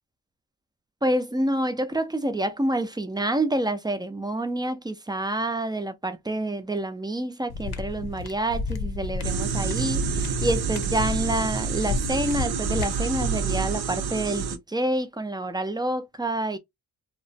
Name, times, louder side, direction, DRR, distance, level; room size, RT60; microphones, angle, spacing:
voice 1, 1.0-16.6, right 1 dB, 10° right, 0.3 m, -28 dB
sound 1, 7.5-13.6, left 4 dB, 70° left, 0.6 m, -32 dB
sound 2, 9.2-14.6, right 6 dB, 70° right, 0.6 m, -28 dB
2.9 x 2.0 x 2.6 m
wide cardioid pair, 95°, 39 cm